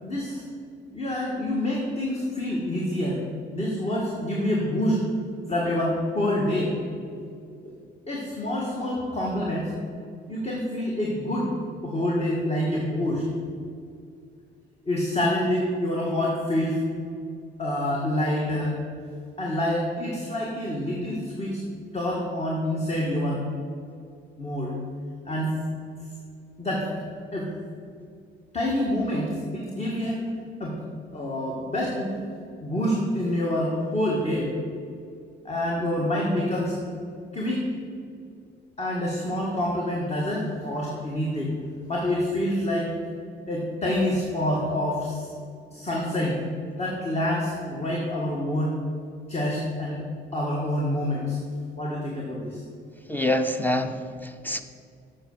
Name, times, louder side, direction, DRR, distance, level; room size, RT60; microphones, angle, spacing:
voice 1, 0.0-0.4 0.9-3.2 3.5-5.0 5.5-6.7 7.6-7.7 8.1-9.7 10.3-11.6 11.8-13.2 14.8-16.8 17.6-18.7 19.4-21.6 21.9-23.4 24.4-24.7 25.2-25.5 26.6-26.9 27.3-27.5 28.5-30.2 30.6-30.8 31.1-32.1 32.6-34.5 35.4-36.7 37.3-37.6 38.8-41.5 41.9-42.9 43.5-45.3 45.7-46.4 46.8-48.8 49.3-50.0 50.3-51.4 51.8-52.6, left 1 dB, 30° left, -3 dB, 1.7 m, -27 dB
voice 2, 53.1-54.6, left 1 dB, 10° left, 7 dB, 0.6 m, -26 dB
7.9 x 5.8 x 6.6 m, 2.3 s
cardioid pair, 90°, 20 cm